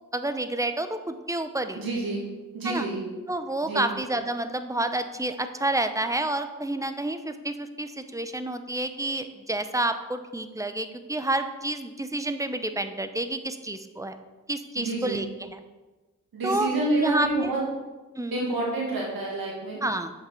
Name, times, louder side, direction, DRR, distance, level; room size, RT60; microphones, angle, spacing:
voice 1, 0.1-1.8 2.6-2.9 3.3-14.2 14.5-15.6 16.4-16.7 17.0-17.5 18.2-18.5 19.8-20.1, right 2 dB, 10° right, 8 dB, 0.8 m, -29 dB
voice 2, 1.7-2.2 2.5-3.0 3.6-3.9 14.8-15.2 16.3-17.6 18.3-19.8, right 2 dB, 90° right, -5 dB, 2.3 m, -28 dB
7.3 x 5.3 x 5.4 m, 1.2 s
cardioid pair, 40°, 34 cm